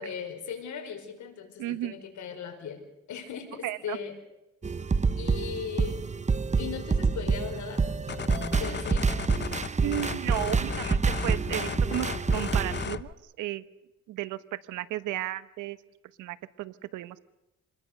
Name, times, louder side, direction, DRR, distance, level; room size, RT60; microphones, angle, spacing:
voice 1, 0.0-4.2 5.2-6.0 6.6-7.8 8.6-9.1, left 7 dB, 70° left, 5 dB, 5.3 m, -38 dB
voice 2, 1.6-2.0 3.6-4.0 9.8-13.6 14.1-15.8 16.2-17.2, right 14 dB, 90° right, 15 dB, 1.1 m, -34 dB
sound 1, 4.6-12.9, right 4 dB, 25° right, 1.0 m, -27 dB
sound 2, 8.1-13.1, left 7 dB, 35° left, 0.9 m, -36 dB
27.5 x 21.5 x 6.6 m, 0.97 s
cardioid pair, 90°, 30 cm